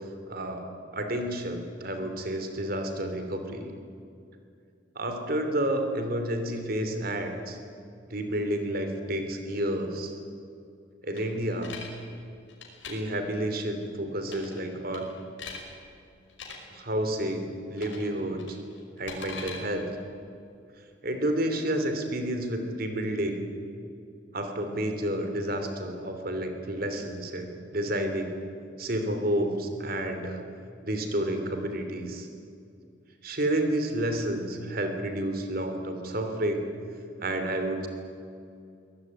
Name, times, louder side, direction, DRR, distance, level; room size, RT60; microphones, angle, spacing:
voice 1, 0.3-3.7 4.9-7.6 8.1-10.1 11.0-11.7 12.8-15.1 16.7-18.6 19.0-19.9 21.0-23.4 24.3-28.3 28.8-30.4 30.8-32.3 33.2-36.7 37.2-37.9, right 1 dB, 45° right, 6 dB, 3.1 m, -30 dB
sound 1, 11.2-11.9 12.5-12.9 14.2-14.6 14.9-15.6 16.3-16.6 17.8-18.1 18.4-19.6, left 5 dB, 70° left, 5.4 m, -41 dB
23.0 x 19.0 x 9.8 m, 2.4 s
head